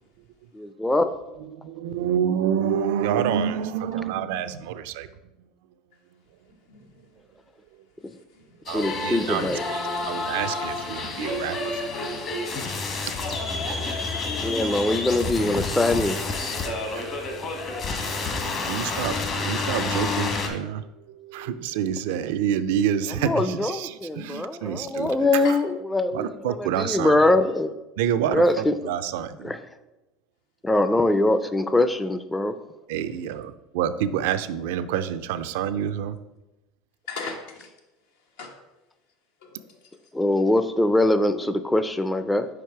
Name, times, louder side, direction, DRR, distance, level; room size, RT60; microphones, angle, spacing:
voice 1, 0.5-1.2 8.0-8.2 8.7-9.6 14.4-16.6 23.2-27.7 28.3-28.7 29.4-29.6 30.6-32.6 40.1-42.5, left 2 dB, 10° left, 11 dB, 0.4 m, -23 dB
voice 2, 1.4-5.1 8.7-9.8 10.1-12.0 13.1-13.5 13.8-14.2 16.5-25.6 26.1-27.3 28.0-29.5 32.9-36.2, right 9 dB, 80° right, 12 dB, 0.4 m, -28 dB
voice 3, 6.7-7.1 8.3-8.6 9.4-9.7 25.4-25.6 37.1-37.7 38.4-38.5 39.4-39.8, left 4 dB, 85° left, 2 dB, 1.2 m, -38 dB
sound 1, 8.7-20.5, left 3 dB, 40° left, 1.1 m, -29 dB
5.0 x 4.8 x 4.5 m, 1.0 s
supercardioid pair, 115°, 0 cm